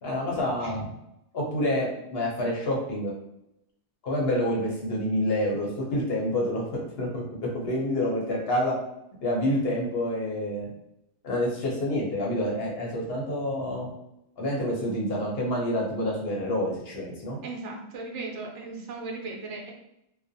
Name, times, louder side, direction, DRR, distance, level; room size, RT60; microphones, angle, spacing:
voice 1, 0.0-0.9 1.3-3.1 4.0-8.7 9.2-10.7 11.2-13.9 14.4-17.4, left 1 dB, 60° left, -2 dB, 0.7 m, -28 dB
voice 2, 17.4-19.7, right 3 dB, 70° right, -1 dB, 0.9 m, -37 dB
2.4 x 2.2 x 2.6 m, 0.83 s
omnidirectional pair, 1.4 m